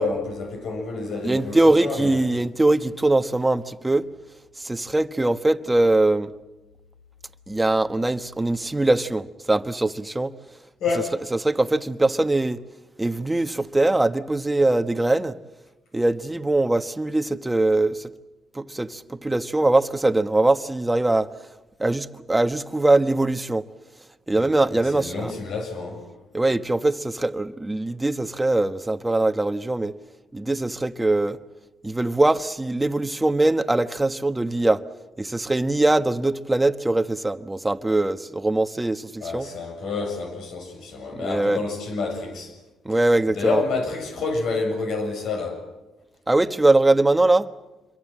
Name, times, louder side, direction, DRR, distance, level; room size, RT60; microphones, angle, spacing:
voice 1, 0.0-1.6 1.8-2.2 10.8-11.1 24.4-24.5 24.8-26.1 39.2-42.5 43.3-45.6, left 3 dB, 75° left, 7.5 m, -28 dB
voice 2, 1.2-4.1 4.6-6.3 7.5-10.3 11.3-12.6 13.0-15.4 15.9-18.1 18.5-21.3 21.8-23.7 24.3-25.3 26.3-30.0 30.3-31.4 31.8-34.8 35.2-39.5 41.1-41.6 42.8-43.6 46.3-47.5, right 2 dB, 15° right, 1.2 m, -22 dB
26.5 x 23.0 x 7.6 m
cardioid pair, 80°, 0 cm